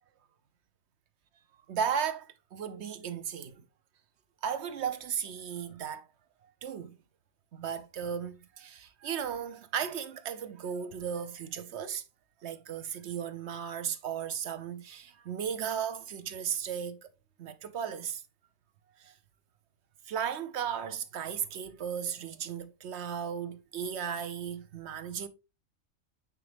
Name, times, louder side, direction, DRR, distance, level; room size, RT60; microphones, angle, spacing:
voice 1, 1.7-3.7 4.4-6.0 6.4-7.0 7.5-12.0 12.4-17.0 17.4-18.2 19.0-19.1 20.1-25.3, right 8 dB, 60° right, 1.0 m, -35 dB
9.3 x 3.7 x 3.4 m
omnidirectional pair, 1.3 m